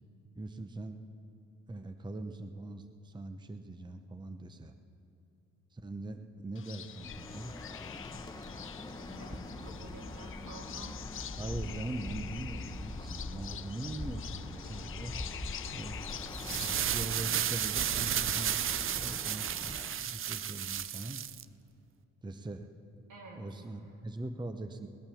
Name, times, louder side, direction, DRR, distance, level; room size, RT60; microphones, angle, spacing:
voice 1, 0.4-1.0 1.7-4.7 5.7-7.5 11.3-15.1 15.7-18.6 18.9-21.2 22.2-22.7 23.4-24.9, right 2 dB, 15° right, 8 dB, 0.8 m, -41 dB
sound 1, 6.5-17.0, left 10 dB, 45° left, 0.5 m, -46 dB
Bird, 7.0-20.1, left 2 dB, 15° left, 0.9 m, -43 dB
voice 2, 9.0-11.0 23.1-23.9, right 3 dB, 85° right, -3 dB, 3.5 m, -50 dB
sound 2, 16.3-21.4, right 10 dB, 45° right, 0.5 m, -33 dB
19.5 x 8.7 x 7.1 m, 2.9 s
cardioid pair, 90°, 30 cm